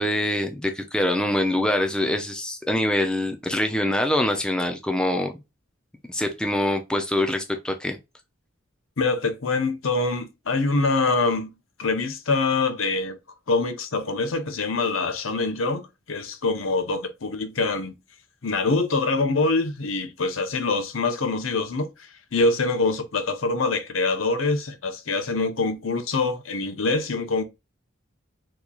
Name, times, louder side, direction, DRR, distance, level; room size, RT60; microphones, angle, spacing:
voice 1, 0.0-5.3 6.1-8.0, left 1 dB, 5° left, 0.4 m, -24 dB
voice 2, 9.0-11.5 11.8-13.2 13.5-17.9 18.4-21.9 22.3-27.4, left 3 dB, 70° left, 0.8 m, -24 dB
3.8 x 3.0 x 2.3 m
head